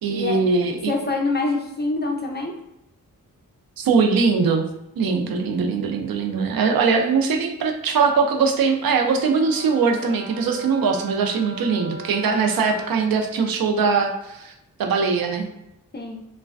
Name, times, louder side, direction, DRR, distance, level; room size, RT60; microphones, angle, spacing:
voice 1, 0.0-0.9 3.8-4.6 5.0-14.5 14.8-15.5, right 5 dB, 85° right, 4 dB, 0.5 m, -21 dB
voice 2, 0.9-2.5 15.9-16.2, left 3 dB, 30° left, 0 dB, 0.5 m, -25 dB
Brass instrument, 8.8-13.2, left 1 dB, 30° right, 0.7 m, -39 dB
3.1 x 2.1 x 2.4 m, 0.87 s
wide cardioid pair, 80°, 34 cm